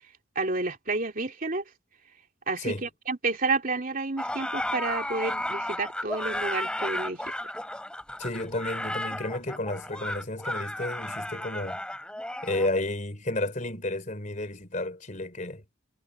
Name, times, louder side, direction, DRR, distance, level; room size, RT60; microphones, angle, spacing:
voice 1, 0.3-1.6 2.5-7.2, right 3 dB, 40° right, 3.0 m, -30 dB
sound 1, 4.2-12.7, left 1 dB, 5° left, 3.0 m, -33 dB
voice 2, 8.2-11.8 12.4-15.6, left 2 dB, 40° left, 3.5 m, -32 dB
head